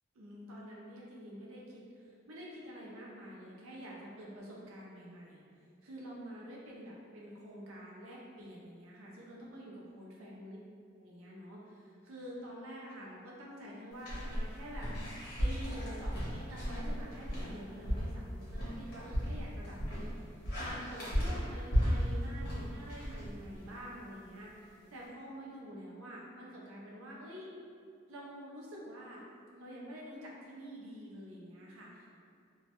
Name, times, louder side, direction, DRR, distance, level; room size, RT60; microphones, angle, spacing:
voice 1, 0.2-5.4 5.8-10.6 11.0-27.5 28.1-29.2 29.5-32.2, equal, 80° right, -4 dB, 0.5 m, -48 dB
sound 1, 14.0-23.8, equal, 45° left, 0.9 m, -35 dB
2.2 x 2.0 x 2.8 m, 2.3 s
head